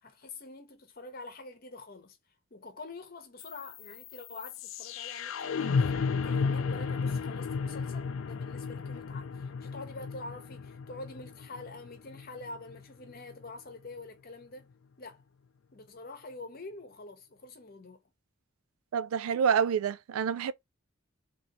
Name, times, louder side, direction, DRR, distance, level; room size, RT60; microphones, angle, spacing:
voice 1, 0.0-2.2 2.5-14.7 15.0-15.2 15.7-18.0, left 2 dB, 45° left, 0.9 m, -46 dB
sound 1, 3.4-13.4, left 5 dB, 65° left, 0.4 m, -34 dB
voice 2, 18.9-20.5, right 7 dB, 80° right, 0.3 m, -27 dB
3.0 x 2.6 x 2.9 m
head